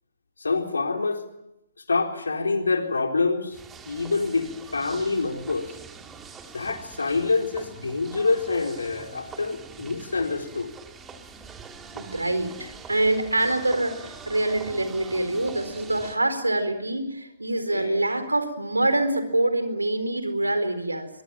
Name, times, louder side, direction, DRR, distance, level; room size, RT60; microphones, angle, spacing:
voice 1, 0.4-1.2 1.9-3.6 3.9-4.5 4.7-5.7 6.5-10.7 17.7-18.0, left 4 dB, 75° left, 4 dB, 4.0 m, -26 dB
sound 1, 3.5-16.2, right 5 dB, 15° right, 2.5 m, -44 dB
voice 2, 11.9-21.1, right 2 dB, 85° right, 10 dB, 4.3 m, -25 dB
23.0 x 23.0 x 9.0 m, 0.86 s
figure-of-eight pair, 125°, 0 cm